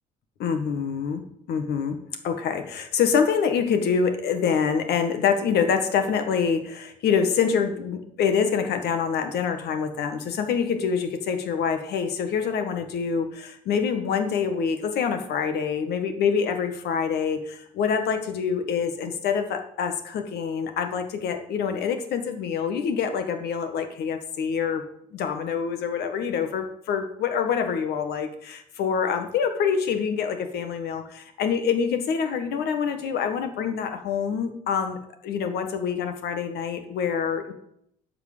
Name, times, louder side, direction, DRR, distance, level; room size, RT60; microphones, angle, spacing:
voice 1, 0.4-1.2 1.5-2.0 2.2-24.8 25.1-37.5, left 6 dB, 70° left, 7 dB, 1.6 m, -26 dB
12.0 x 5.0 x 6.8 m, 0.72 s
cardioid pair, 110°, 17 cm